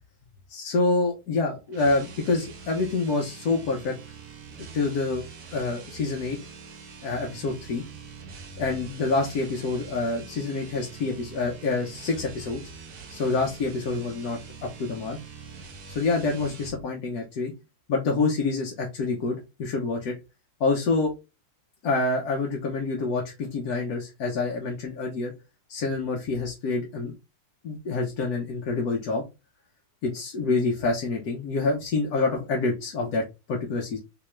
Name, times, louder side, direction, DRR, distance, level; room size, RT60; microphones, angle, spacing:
voice 1, 0.5-3.9 4.7-5.2 5.5-6.4 7.0-7.8 8.6-12.6 13.1-15.2 15.9-17.5 17.9-20.1 20.6-21.1 21.8-25.3 25.7-27.1 27.6-29.2 30.0-34.0, left 3 dB, 65° left, -1 dB, 1.1 m, -27 dB
sound 1, 1.7-16.8, right 5 dB, 55° right, 1.1 m, -44 dB
3.5 x 3.0 x 3.1 m, 0.26 s
omnidirectional pair, 2.3 m